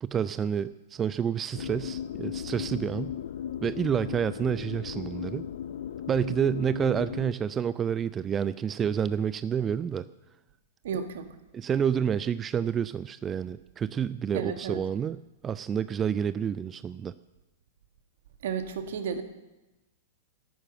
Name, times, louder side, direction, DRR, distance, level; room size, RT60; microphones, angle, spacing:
voice 1, 0.0-3.1 3.6-5.4 6.1-10.1 11.5-17.1, right 8 dB, 20° right, 15 dB, 0.4 m, -29 dB
sound 1, 1.5-7.3, left 9 dB, 60° left, 0.5 m, -36 dB
voice 2, 10.8-11.3 14.3-14.8 18.4-19.2, right 6 dB, 60° right, 7 dB, 1.8 m, -32 dB
13.5 x 11.5 x 7.9 m, 1.0 s
figure-of-eight pair, 100°, 0 cm